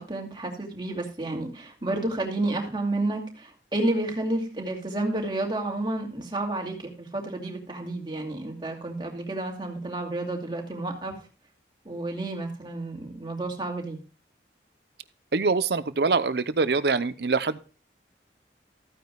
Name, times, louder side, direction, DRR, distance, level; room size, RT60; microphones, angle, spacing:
voice 1, 0.0-11.2 11.8-14.0, right 2 dB, 25° right, 1 dB, 2.4 m, -30 dB
voice 2, 15.3-17.6, right 4 dB, 65° right, 14 dB, 0.7 m, -24 dB
14.5 x 9.3 x 2.3 m, 0.34 s
head